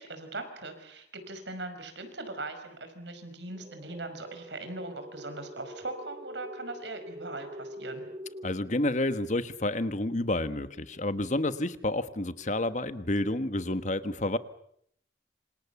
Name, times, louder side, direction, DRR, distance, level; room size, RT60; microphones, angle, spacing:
voice 1, 0.0-8.0, right 2 dB, 85° right, 8 dB, 5.7 m, -40 dB
sound 1, 3.5-8.5, equal, 30° right, 1.1 m, -44 dB
voice 2, 8.4-14.4, left 1 dB, 45° left, 12 dB, 1.3 m, -29 dB
27.5 x 26.5 x 7.2 m, 0.71 s
head